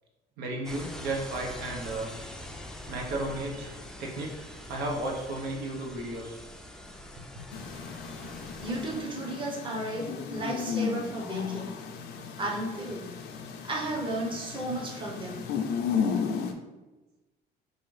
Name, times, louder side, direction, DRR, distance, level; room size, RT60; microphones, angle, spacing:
voice 1, 0.4-2.1 2.9-3.7 4.0-4.3 4.7-6.4, right 2 dB, 80° right, 0 dB, 0.8 m, -33 dB
sound 1, 0.6-9.0, left 1 dB, 5° left, 0.4 m, -44 dB
sound 2, 7.5-16.5, left 6 dB, 75° left, 0.5 m, -34 dB
voice 2, 8.6-11.7 12.4-13.1 13.6-15.4, right 1 dB, 30° right, -1 dB, 0.8 m, -34 dB
4.7 x 2.6 x 3.1 m, 1.1 s
cardioid pair, 110°, 17 cm